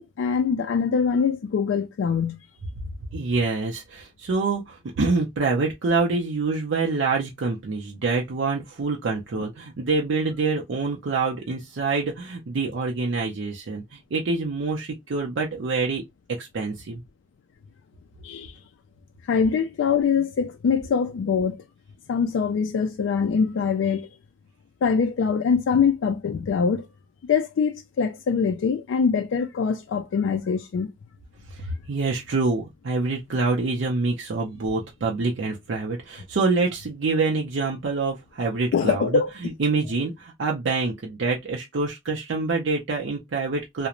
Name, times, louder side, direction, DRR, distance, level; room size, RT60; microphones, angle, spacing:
voice 1, 0.0-2.4 18.2-18.5 19.3-21.6 22.1-24.1 24.8-26.9 27.3-30.9 38.7-39.3, left 6 dB, 75° left, 0.3 m, -23 dB
voice 2, 3.1-16.0 16.4-17.0 31.5-43.9, right 3 dB, 70° right, 0.5 m, -26 dB
2.4 x 2.0 x 2.9 m
head